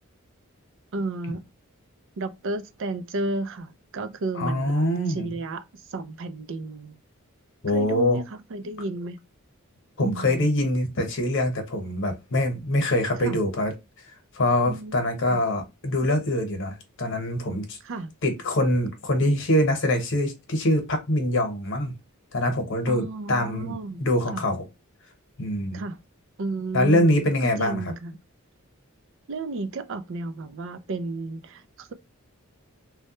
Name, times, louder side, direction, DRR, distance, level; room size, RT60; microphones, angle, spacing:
voice 1, 0.9-1.4 2.2-5.6 5.9-7.0 7.7-9.2 10.0-10.5 13.2-13.4 14.6-14.9 15.3-15.4 17.8-18.1 22.9-24.0 24.3-24.4 25.7-26.0 26.4-28.1 29.3-31.9, right 2 dB, 60° right, 0.4 m, -32 dB
voice 2, 4.3-5.3 7.6-8.2 10.0-13.7 14.3-17.8 18.2-21.9 22.3-24.6 25.4-25.8 26.7-27.9, left 1 dB, 60° left, 1.0 m, -24 dB
3.1 x 2.3 x 2.8 m
head